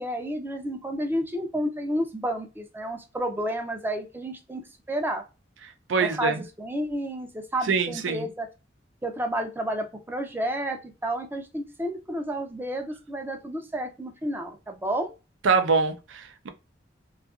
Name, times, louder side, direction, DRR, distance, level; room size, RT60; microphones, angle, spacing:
voice 1, 0.0-5.2 6.0-8.5 9.0-15.1, right 1 dB, 10° right, 0.4 m, -31 dB
voice 2, 5.9-6.4 7.7-8.3 15.4-16.5, right 5 dB, 80° right, 0.5 m, -24 dB
2.7 x 2.4 x 2.3 m
head